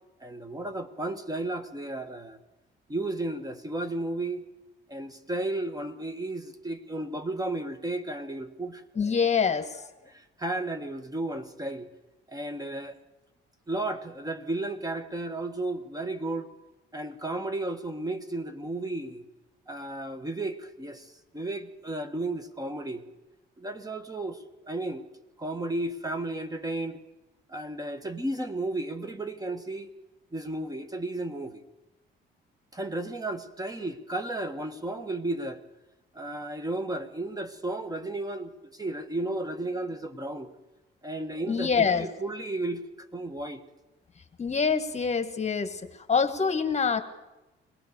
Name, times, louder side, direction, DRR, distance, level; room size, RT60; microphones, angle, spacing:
voice 1, 0.2-2.4 2.9-4.5 4.9-8.8 10.1-11.9 12.3-13.0 13.7-16.5 16.9-19.2 19.7-23.0 23.6-25.0 25.4-27.0 27.5-29.9 30.3-31.6 32.7-35.6 36.1-40.5 41.0-43.6, right 2 dB, 20° right, 9 dB, 1.6 m, -33 dB
voice 2, 8.9-9.9 41.5-42.1 44.4-47.0, left 6 dB, 35° left, 9 dB, 1.7 m, -26 dB
22.0 x 17.5 x 6.9 m, 1.1 s
cardioid pair, 90°, 20 cm